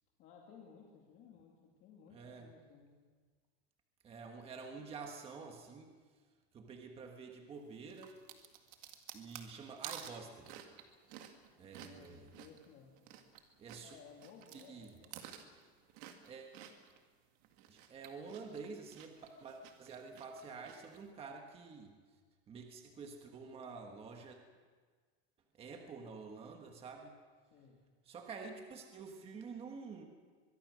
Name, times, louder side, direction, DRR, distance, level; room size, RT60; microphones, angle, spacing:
voice 1, 0.2-3.0 11.8-12.9 13.8-15.2 27.5-27.8, left 6 dB, 35° left, -1 dB, 2.5 m, -58 dB
voice 2, 2.1-2.5 4.0-5.9 6.5-8.2 9.1-10.6 11.6-12.3 13.6-13.9 14.5-14.9 16.3-16.6 17.7-21.9 22.5-24.4 25.5-27.2 28.0-30.0, right 4 dB, 20° right, 3 dB, 1.4 m, -49 dB
sound 1, 7.9-13.4 13.7-17.0 17.4-21.0, right 10 dB, 45° right, 2.0 m, -52 dB
23.0 x 23.0 x 6.3 m, 1.5 s
supercardioid pair, 175°, 32 cm